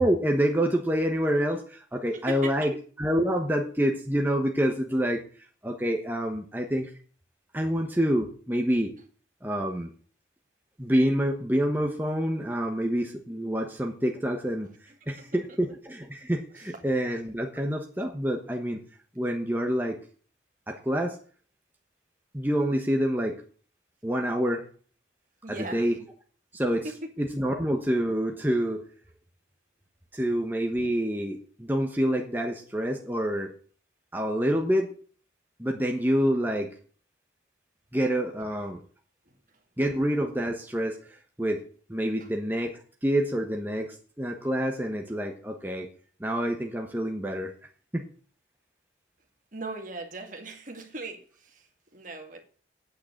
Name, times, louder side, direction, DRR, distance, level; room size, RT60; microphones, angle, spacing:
voice 1, 0.0-2.7 3.0-6.9 7.5-8.9 9.4-9.9 10.8-18.8 19.1-20.0 20.7-21.2 22.3-23.4 24.0-24.6 25.5-26.0 26.5-26.9 27.2-28.9 30.1-33.5 34.1-34.9 35.6-36.8 37.9-38.8 39.8-41.6 41.9-45.9 46.2-47.5 47.9-48.0, equal, 10° right, 2 dB, 1.2 m, -27 dB
voice 2, 2.1-2.7 15.0-15.3 25.4-25.9 26.8-27.1 39.3-39.4 42.2-42.3 49.5-52.4, right 2 dB, 45° right, 4 dB, 2.2 m, -39 dB
9.1 x 8.4 x 8.2 m, 0.43 s
head